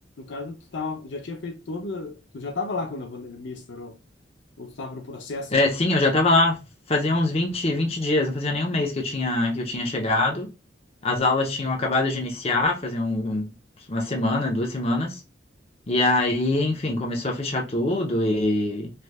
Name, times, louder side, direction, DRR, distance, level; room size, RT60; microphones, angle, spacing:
voice 1, 0.2-3.9 4.6-5.6, left 3 dB, 70° left, 0.6 m, -33 dB
voice 2, 5.5-6.6 6.9-10.5 11.0-13.4 13.9-15.2 15.9-18.9, left 2 dB, 35° left, 0.7 m, -23 dB
3.2 x 3.1 x 2.2 m
head